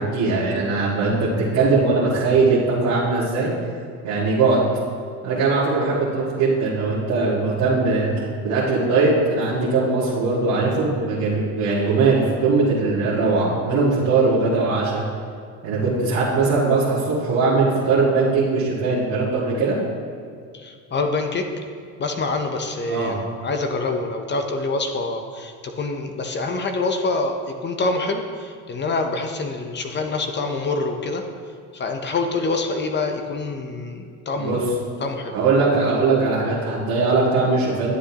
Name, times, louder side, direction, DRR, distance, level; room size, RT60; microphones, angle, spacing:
voice 1, 0.0-3.5 4.0-4.6 5.2-8.1 8.4-15.0 15.6-19.8 22.9-23.1 34.4-34.6 35.3-37.9, right 3 dB, 75° right, -11 dB, 2.1 m, -20 dB
voice 2, 20.5-21.5 22.0-31.2 31.7-34.6 35.0-35.4, left 3 dB, 30° left, 5 dB, 0.7 m, -26 dB
11.5 x 7.7 x 2.9 m, 2.2 s
supercardioid pair, 105°, 36 cm